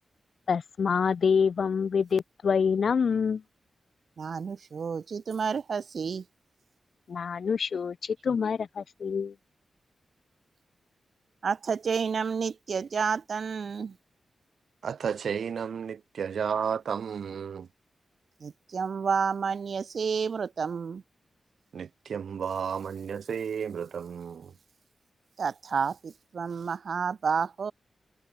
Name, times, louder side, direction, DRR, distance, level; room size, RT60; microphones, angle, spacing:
voice 1, 0.5-3.4 7.1-9.3, left 6 dB, 65° left, 2.2 m, -26 dB
voice 2, 4.2-6.2 11.4-14.0 18.4-21.0 25.4-27.7, right 6 dB, 60° right, 5.6 m, -30 dB
voice 3, 14.8-17.7 21.7-24.5, right 7 dB, 85° right, 1.8 m, -32 dB
wide cardioid pair, 130°, 0 cm